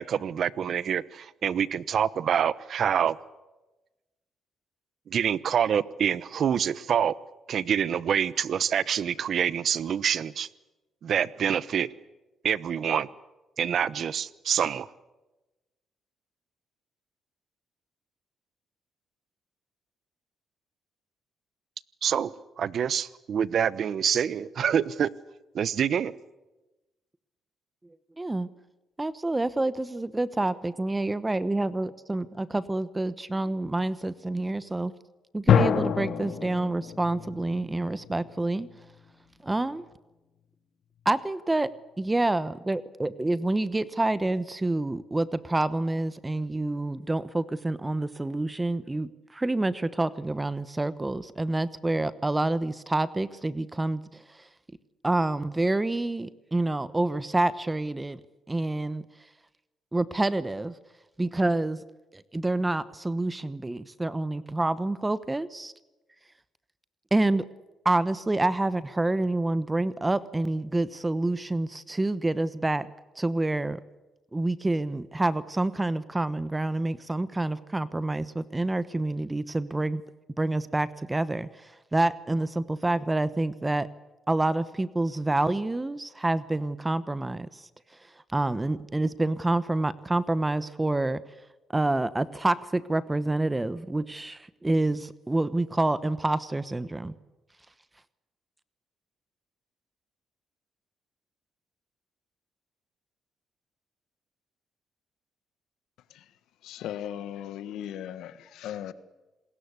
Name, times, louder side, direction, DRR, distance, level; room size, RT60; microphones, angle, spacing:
voice 1, 0.0-3.2 5.1-7.1 7.5-10.5 11.0-11.9 12.4-13.1 13.6-14.9 22.0-22.3 22.6-25.1 25.5-26.1, right 8 dB, 60° right, 19 dB, 1.0 m, -26 dB
voice 2, 28.2-28.5 29.0-34.9 35.3-38.7 39.4-39.9 41.0-41.7 42.0-54.2 55.0-58.2 58.5-59.0 59.9-60.7 61.2-61.8 62.1-65.7 67.1-67.4 67.8-72.9 73.2-73.8 74.3-80.0 80.4-83.9 84.3-87.7 88.3-91.2 91.7-97.1, right 2 dB, 15° right, 16 dB, 1.0 m, -27 dB
sound 1, 35.5-38.9, left 7 dB, 65° left, 2.3 m, -26 dB
voice 3, 106.6-108.9, left 10 dB, 85° left, 14 dB, 1.4 m, -37 dB
27.5 x 20.5 x 8.3 m, 1.1 s
cardioid pair, 90°, 0 cm